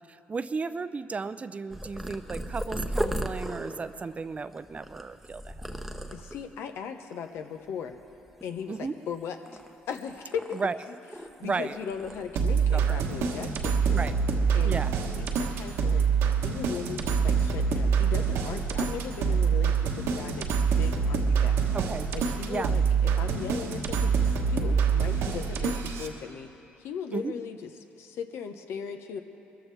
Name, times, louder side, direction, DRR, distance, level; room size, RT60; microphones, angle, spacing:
voice 1, 0.1-5.8 8.7-8.9 10.5-10.8 11.4-11.8 12.7-13.1 13.9-14.1 14.6-14.9 21.7-22.1 22.5-22.7 27.1-27.3, right 4 dB, 30° right, 13 dB, 0.5 m, -34 dB
Purr, 1.7-6.5 7.1-7.6 7.8-9.1 9.5-11.5 11.8-13.1 13.4-13.7 14.4-14.7, equal, ahead, 0.9 m, -37 dB
voice 2, 6.1-7.9 8.4-10.6 10.9-11.0 11.4-14.1 14.5-14.8 15.1-16.1 16.4-20.5 20.8-21.6 22.1-24.2 24.5-26.5 26.8-29.2, left 7 dB, 75° left, 6 dB, 1.0 m, -38 dB
sound 1, 12.4-26.1, right 6 dB, 80° right, 1.3 m, -26 dB
22.0 x 14.0 x 3.4 m, 2.7 s
cardioid pair, 80°, 4 cm